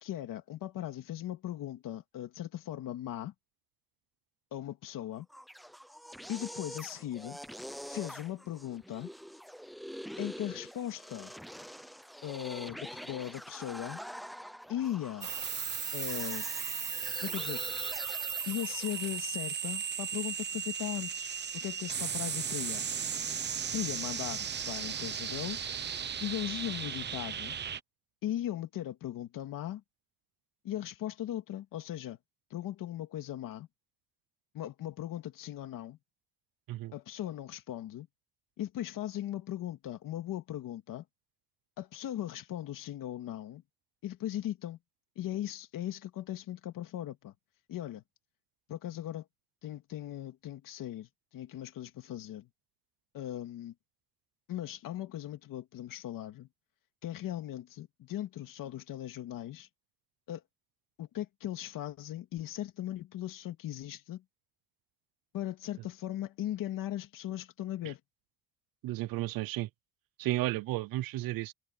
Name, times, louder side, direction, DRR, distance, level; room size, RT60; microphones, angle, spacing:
voice 1, 0.0-3.3 4.5-5.3 6.3-7.4 7.9-9.1 10.2-11.3 12.2-14.0 14.7-15.3 15.9-16.4 17.2-17.6 18.5-22.9 23.7-25.6 26.2-27.6 28.2-29.8 30.6-32.2 32.5-33.7 34.5-36.0 36.9-38.1 38.6-41.0 41.8-43.6 44.0-44.8 45.2-47.3 47.7-48.0 48.7-49.3 49.6-52.5 53.1-53.7 54.5-56.5 57.0-59.7 60.3-60.4 61.0-64.2 65.3-68.0, left 12 dB, 70° left, 2.6 m, -38 dB
sound 1, 5.2-19.3, equal, ahead, 0.5 m, -45 dB
sound 2, 15.2-27.8, right 7 dB, 30° right, 1.1 m, -36 dB
voice 2, 68.8-69.7 70.2-71.5, right 17 dB, 85° right, 0.7 m, -33 dB
cardioid pair, 175°, 34 cm